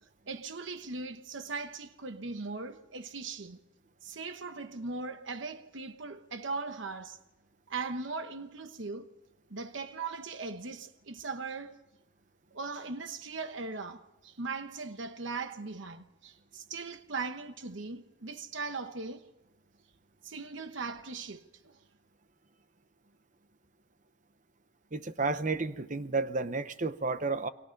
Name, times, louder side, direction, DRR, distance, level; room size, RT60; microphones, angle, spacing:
voice 1, 0.3-3.6 4.0-7.2 7.7-9.1 9.5-11.8 12.5-19.3 20.2-21.8, right 4 dB, 60° right, 1.1 m, -39 dB
voice 2, 24.9-27.5, right 3 dB, 40° right, 0.9 m, -31 dB
29.5 x 22.5 x 5.3 m
head